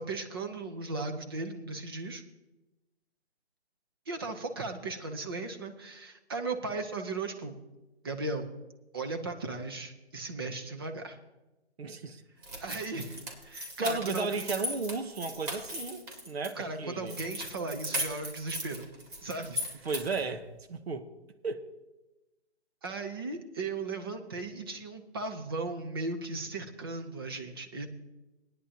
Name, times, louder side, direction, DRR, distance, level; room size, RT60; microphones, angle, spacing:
voice 1, 0.0-2.2 4.1-7.6 8.0-8.5 8.9-11.2 12.6-14.3 16.6-18.8 19.2-19.8 22.8-27.9, right 3 dB, 20° right, 0.7 m, -36 dB
voice 2, 11.8-12.2 13.8-17.2 19.8-21.1 21.4-21.7, right 3 dB, 65° right, 1.2 m, -34 dB
sound 1, 12.4-16.5 17.1-20.3, equal, 45° right, 2.9 m, -38 dB
19.0 x 10.0 x 2.9 m
hypercardioid pair, 160°, 33 cm